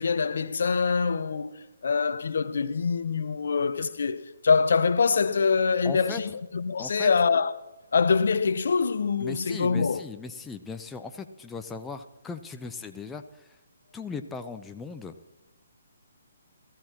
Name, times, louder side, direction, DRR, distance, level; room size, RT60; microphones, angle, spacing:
voice 1, 0.0-1.5 1.8-7.5 7.9-10.0, left 5 dB, 60° left, 0.8 m, -24 dB
voice 2, 5.8-6.2 6.8-7.1 9.2-13.5 13.9-15.1, left 4 dB, 10° left, 0.6 m, -38 dB
18.0 x 14.5 x 2.9 m
figure-of-eight pair, 135°, 0 cm